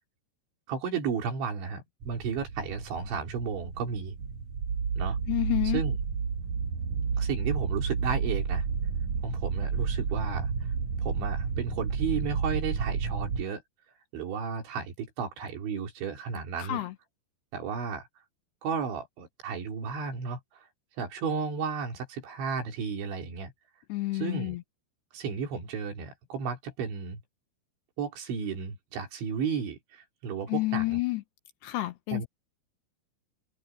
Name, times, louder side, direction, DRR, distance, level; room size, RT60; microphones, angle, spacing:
voice 1, 0.7-4.2 5.0-5.2 5.7-6.0 7.2-8.6 9.2-10.5 11.0-13.6 14.1-16.8 17.5-18.1 18.6-20.7 21.0-23.5 24.1-24.6 25.1-27.2 28.0-31.0 32.1-32.3, right 6 dB, 75° right, 6.0 m, -33 dB
sound 1, 2.0-13.4, right 5 dB, 50° right, 2.4 m, -31 dB
voice 2, 5.3-5.8 16.6-16.9 23.9-24.6 30.5-31.2 31.6-32.2, left 19 dB, 75° left, 2.7 m, -29 dB
omnidirectional pair, 5.4 m